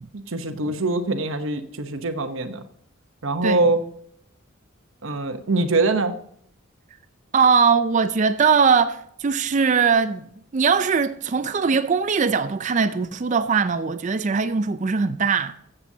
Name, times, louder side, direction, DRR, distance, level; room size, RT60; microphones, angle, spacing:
voice 1, 0.1-2.6 3.2-3.8 5.0-6.1, right 2 dB, 65° right, 0.9 m, -23 dB
voice 2, 7.3-10.3 10.5-15.6, right 5 dB, 35° right, 0.4 m, -20 dB
13.0 x 7.8 x 2.8 m
head